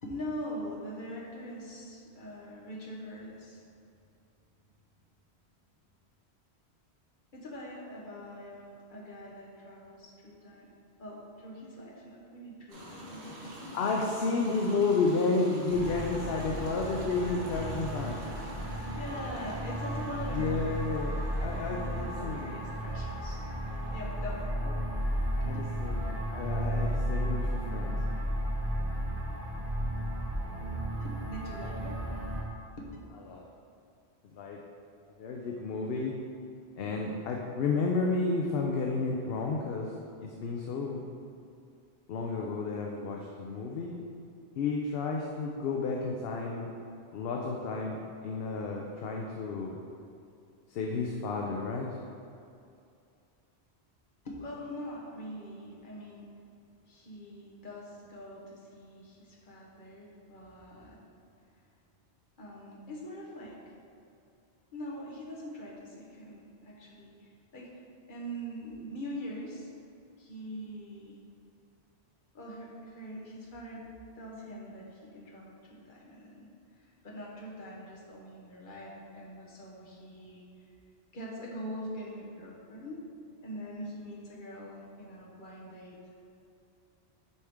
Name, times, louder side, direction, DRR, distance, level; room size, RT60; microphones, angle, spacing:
voice 1, 0.0-3.6 7.3-10.7 11.0-13.5 18.6-21.0 21.5-23.4 23.9-24.5 25.4-25.6 31.0-33.0 54.2-56.4 56.9-61.0 62.4-63.7 64.7-67.7 68.1-69.7 70.2-71.2 72.3-76.5 76.7-80.4 81.1-83.0 83.4-86.2, equal, 50° left, -4 dB, 1.2 m, -43 dB
sound 1, 12.7-24.4, equal, 60° right, 1.4 m, -47 dB
voice 2, 13.7-18.2 20.3-22.5 24.6-24.7 25.4-28.0 33.3-33.4 34.3-34.6 35.2-36.1 36.8-41.0 42.1-43.9 44.6-46.7 47.1-49.8 50.7-52.0, left 3 dB, 65° left, 0 dB, 0.8 m, -32 dB
sound 2, 15.7-32.4, equal, 35° right, 1.0 m, -34 dB
6.9 x 4.7 x 3.6 m, 2.5 s
omnidirectional pair, 1.1 m